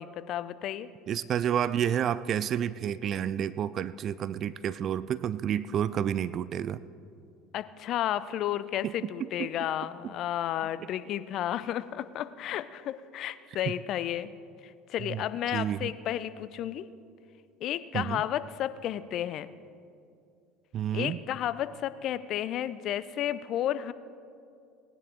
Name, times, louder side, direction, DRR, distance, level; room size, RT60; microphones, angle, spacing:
voice 1, 0.0-0.9 7.5-14.3 14.6-16.8 17.6-19.5 20.9-23.9, left 11 dB, 55° left, 14 dB, 0.5 m, -32 dB
voice 2, 1.1-6.8 8.8-9.1 9.4-9.7 15.0-15.2 15.5-15.9 17.9-18.2 20.7-21.2, right 9 dB, 45° right, 17 dB, 0.4 m, -30 dB
19.0 x 10.5 x 3.8 m, 2.4 s
hypercardioid pair, 70°, 0 cm